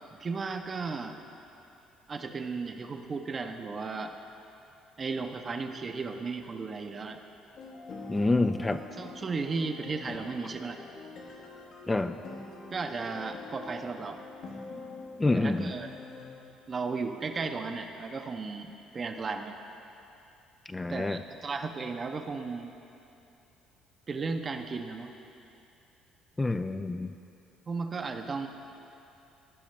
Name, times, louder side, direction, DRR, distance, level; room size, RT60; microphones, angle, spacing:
voice 1, 0.2-1.2 2.1-4.1 5.0-7.2 8.9-10.8 12.7-14.2 15.3-15.9 16.7-19.6 20.9-22.7 24.1-25.1 27.7-28.5, right 4 dB, 40° right, 6 dB, 0.7 m, -35 dB
sound 1, 7.6-16.5, left 3 dB, 65° left, 1.2 m, -45 dB
voice 2, 8.1-8.8 11.9-12.2 15.2-15.7 20.7-21.2 26.4-27.1, left 2 dB, 20° left, 8 dB, 0.3 m, -27 dB
16.5 x 5.7 x 3.2 m, 2.8 s
hypercardioid pair, 60°, 0 cm